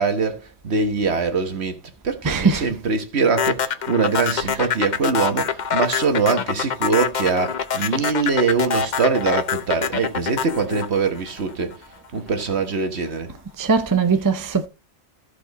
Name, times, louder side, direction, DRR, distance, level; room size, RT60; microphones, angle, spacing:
voice 1, 0.0-11.8 12.1-13.3, right 4 dB, 60° right, 1.5 m, -23 dB
voice 2, 2.2-2.7 13.6-14.7, right 5 dB, 20° right, 0.6 m, -20 dB
sound 1, 3.4-11.7, left 7 dB, 45° left, 0.7 m, -24 dB
14.5 x 5.0 x 4.1 m
omnidirectional pair, 1.3 m